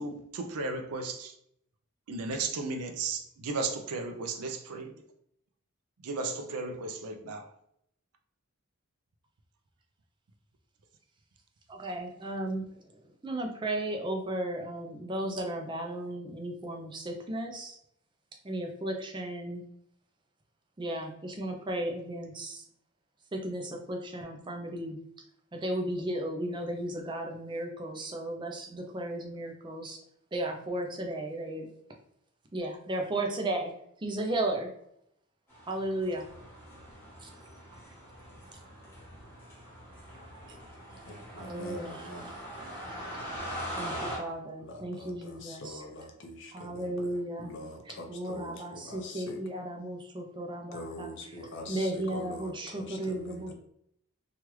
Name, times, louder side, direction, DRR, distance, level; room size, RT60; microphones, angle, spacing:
voice 1, 0.0-1.3 2.1-4.9 6.0-7.5, right 3 dB, 90° right, 5 dB, 0.5 m, -35 dB
voice 2, 11.7-12.7 13.2-17.8 18.4-19.6 20.8-22.6 23.3-25.0 25.5-30.0 30.3-31.7 32.5-33.7 34.0-34.7 35.7-36.2 37.2-37.3 41.4-42.0 43.8-45.7 46.5-47.5 48.1-51.1 51.7-53.5, right 1 dB, 20° right, 2 dB, 0.4 m, -34 dB
sound 1, 35.5-44.2, equal, 10° left, 1.2 m, -42 dB
voice 3, 40.9-42.3 44.6-49.4 50.7-53.5, left 1 dB, 55° left, 3 dB, 0.6 m, -44 dB
3.1 x 2.3 x 3.0 m, 0.74 s
head